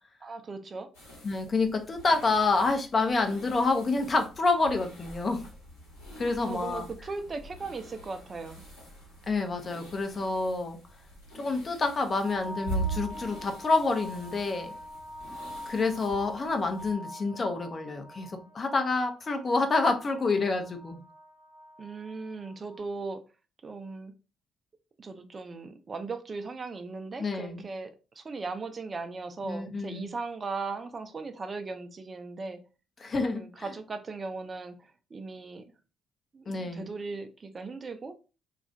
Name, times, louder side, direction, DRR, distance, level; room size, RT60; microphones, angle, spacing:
voice 1, 0.2-0.9 6.2-8.6 21.8-23.2 23.6-24.1 25.0-32.6 33.3-35.7 36.3-38.1, right 4 dB, 40° right, 8 dB, 0.4 m, -38 dB
sound 1, 0.9-16.9, right 2 dB, 85° left, 1.1 m, -43 dB
voice 2, 1.2-5.4 6.2-6.8 9.3-10.8 11.3-14.7 15.7-21.0 27.2-27.7 29.4-30.1 33.0-33.4 36.5-36.9, left 3 dB, 40° left, 5 dB, 0.5 m, -28 dB
sound 2, 12.2-22.8, left 1 dB, 85° right, 0.6 m, -44 dB
2.3 x 2.0 x 2.6 m, 0.33 s
hypercardioid pair, 45°, 0 cm